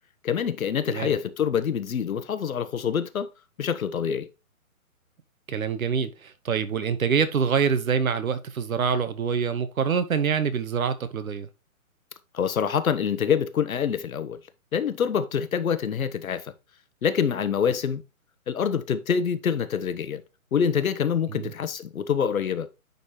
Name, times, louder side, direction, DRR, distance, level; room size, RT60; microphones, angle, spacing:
voice 1, 0.2-3.3 3.6-4.3 12.3-14.4 14.7-16.5 17.0-18.0 18.5-20.2 20.5-22.7, left 7 dB, 75° left, 1.1 m, -26 dB
voice 2, 5.5-11.5 21.3-21.5, right 6 dB, 70° right, 1.3 m, -25 dB
10.5 x 4.1 x 3.1 m
hypercardioid pair, 155°, 42 cm